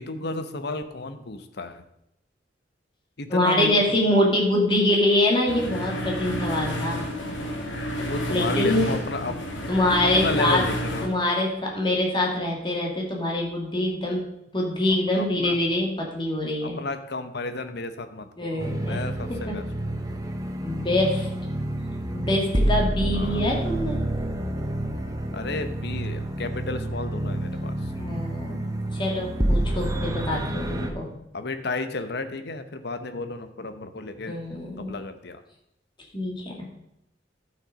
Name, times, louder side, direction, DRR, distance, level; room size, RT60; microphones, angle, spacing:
voice 1, 0.0-1.8 3.2-3.7 8.0-9.4 10.0-11.1 15.1-15.6 16.6-19.6 23.1-23.4 25.3-27.7 31.3-34.4 34.9-35.4, left 3 dB, 60° left, 9 dB, 0.9 m, -32 dB
voice 2, 3.3-7.0 8.3-8.9 9.7-10.7 11.0-14.3 14.5-16.8 18.4-19.0 19.3-19.6 20.6-21.3 22.1-24.0 27.9-31.2 34.3-35.0 36.1-36.7, left 1 dB, 25° left, 0 dB, 2.4 m, -24 dB
sound 1, 5.5-11.1, equal, 85° left, 2.2 m, -30 dB
sound 2, 18.6-30.9, right 1 dB, 20° right, 1.1 m, -28 dB
11.5 x 6.5 x 5.1 m, 0.81 s
head